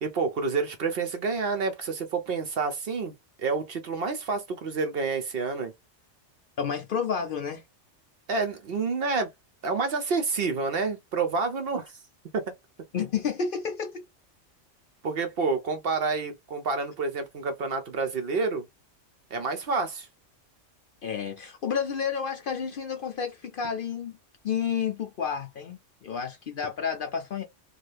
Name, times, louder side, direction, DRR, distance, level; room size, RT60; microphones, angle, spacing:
voice 1, 0.0-5.7 8.3-9.3 9.6-11.9 12.3-12.4 15.0-18.7 19.3-20.1, right 4 dB, 60° right, 0.7 m, -28 dB
voice 2, 6.6-7.6 12.9-14.0 21.0-24.1 24.4-27.4, left 7 dB, 55° left, 0.6 m, -30 dB
2.7 x 2.4 x 3.2 m
omnidirectional pair, 1.3 m